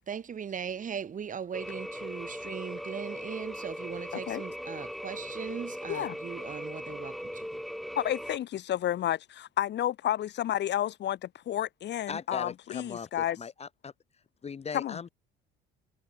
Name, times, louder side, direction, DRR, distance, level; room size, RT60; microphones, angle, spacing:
voice 1, 0.1-7.6, right 7 dB, 40° right, 4.6 m, -39 dB
sound 1, 1.5-8.4, equal, ahead, 7.4 m, -39 dB
voice 2, 7.9-13.4 14.7-15.0, left 11 dB, 55° left, 3.3 m, -31 dB
voice 3, 12.1-13.9 14.4-15.1, left 6 dB, 30° left, 1.8 m, -39 dB
cardioid pair, 110°, 21 cm